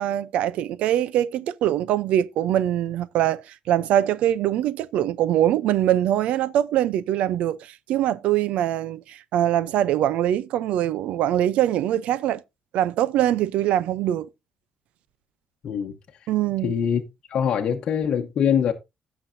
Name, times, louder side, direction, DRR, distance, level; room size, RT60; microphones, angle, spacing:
voice 1, 0.0-12.4 12.7-14.3 16.3-16.7, right 12 dB, 80° right, 0.6 m, -23 dB
voice 2, 16.6-17.0 17.3-18.7, left 8 dB, 50° left, 1.0 m, -23 dB
16.5 x 6.1 x 2.6 m
cardioid pair, 170°, 2 cm